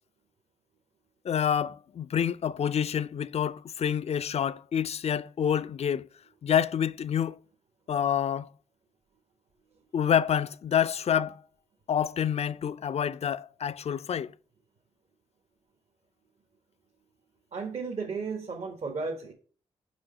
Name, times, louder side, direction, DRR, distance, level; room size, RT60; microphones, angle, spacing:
voice 1, 1.2-6.1 6.4-7.4 7.9-8.5 9.9-11.4 11.9-14.3, left 8 dB, 55° left, 0.4 m, -27 dB
voice 2, 17.5-19.3, right 4 dB, 60° right, 1.4 m, -34 dB
5.2 x 4.9 x 6.4 m
supercardioid pair, 50°, 13 cm